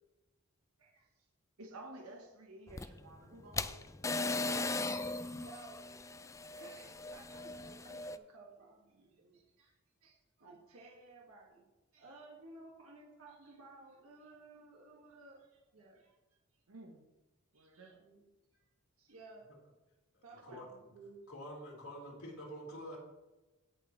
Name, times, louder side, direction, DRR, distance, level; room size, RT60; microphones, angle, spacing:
voice 1, 0.8-1.3 5.3-6.0 6.2-9.7 10.0-11.7 11.9-16.2 17.5-18.3 19.0-19.5 20.2-21.2, right 3 dB, 75° right, -3 dB, 1.9 m, -56 dB
voice 2, 1.6-4.0 4.3-5.3 16.7-17.1 17.5-18.0, right 2 dB, 90° right, 3 dB, 1.0 m, -53 dB
sound 1, 2.7-8.2, left 3 dB, 15° left, 0.3 m, -38 dB
voice 3, 21.3-23.0, equal, 90° left, -3 dB, 4.0 m, -46 dB
17.0 x 6.5 x 3.2 m, 1.1 s
head